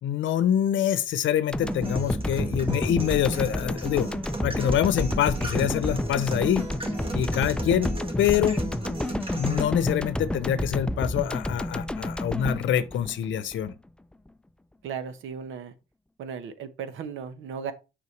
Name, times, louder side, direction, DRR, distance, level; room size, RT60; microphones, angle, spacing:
voice 1, 0.0-4.1 4.4-6.7 7.1-8.6 9.4-13.7, left 10 dB, 75° left, 0.8 m, -25 dB
sound 1, 1.5-13.7, left 1 dB, 5° left, 0.4 m, -30 dB
sound 2, 1.6-9.6, right 2 dB, 25° right, 1.6 m, -36 dB
voice 2, 14.8-15.7 16.2-17.7, right 7 dB, 80° right, 1.0 m, -36 dB
6.8 x 5.6 x 3.2 m
cardioid pair, 90°, 20 cm